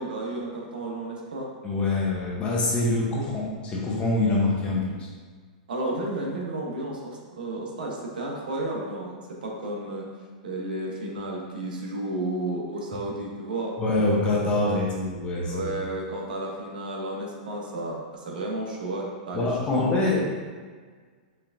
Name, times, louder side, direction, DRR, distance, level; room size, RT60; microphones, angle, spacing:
voice 1, 0.0-1.5 5.7-10.0 10.4-13.8 15.5-20.2, right 1 dB, 85° right, -1 dB, 1.0 m, -32 dB
voice 2, 1.6-5.1 13.8-15.7 19.3-20.2, left 2 dB, 25° left, -4 dB, 0.9 m, -25 dB
4.4 x 3.4 x 2.6 m, 1.5 s
hypercardioid pair, 145°, 5 cm